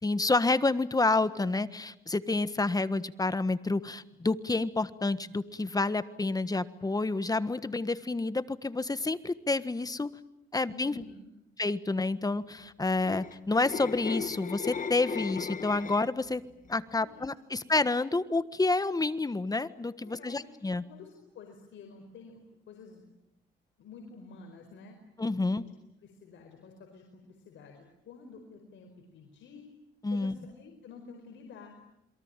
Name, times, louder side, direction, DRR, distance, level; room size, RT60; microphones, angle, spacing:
voice 1, 0.0-10.2 10.5-11.0 11.6-16.4 16.7-20.8 25.2-25.6 30.0-30.4, left 3 dB, 20° left, 14 dB, 1.5 m, -29 dB
voice 2, 10.7-11.2 16.9-17.6 20.0-22.4 22.7-23.1 23.8-25.0 25.4-25.6 26.0-29.7 30.1-31.8, left 4 dB, 70° left, 3 dB, 5.0 m, -50 dB
sound 1, 12.8-16.3 16.7-17.0, left 6 dB, 40° left, 1.2 m, -37 dB
28.5 x 22.5 x 9.1 m, 0.84 s
cardioid pair, 90°, 20 cm